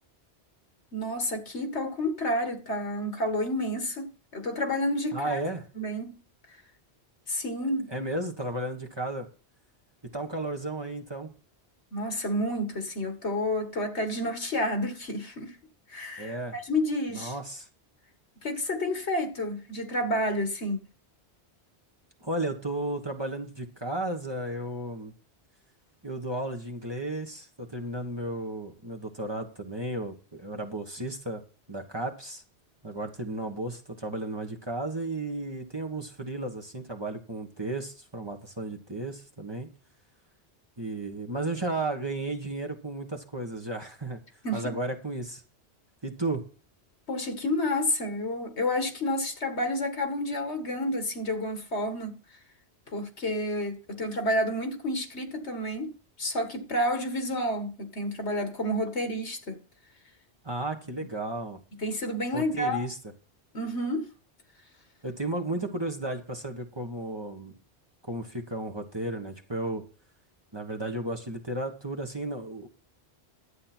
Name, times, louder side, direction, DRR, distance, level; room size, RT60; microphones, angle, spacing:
voice 1, 0.9-5.4 5.7-6.2 6.5-6.6 7.3-7.9 11.9-15.6 15.9-17.3 18.4-20.8 44.4-44.7 47.1-52.2 52.9-55.9 56.2-59.6 61.8-62.8 63.5-64.1, left 1 dB, 75° left, 2.2 m, -30 dB
voice 2, 5.1-5.6 7.9-9.3 10.1-11.3 16.2-16.6 17.1-17.7 22.2-25.1 26.0-31.4 31.7-32.4 32.8-39.7 40.8-44.2 44.5-45.4 46.0-46.4 60.4-61.6 62.3-63.0 65.0-67.5 68.1-69.8 70.5-72.7, right 2 dB, 25° right, 1.4 m, -34 dB
11.5 x 8.7 x 4.5 m
omnidirectional pair, 1.1 m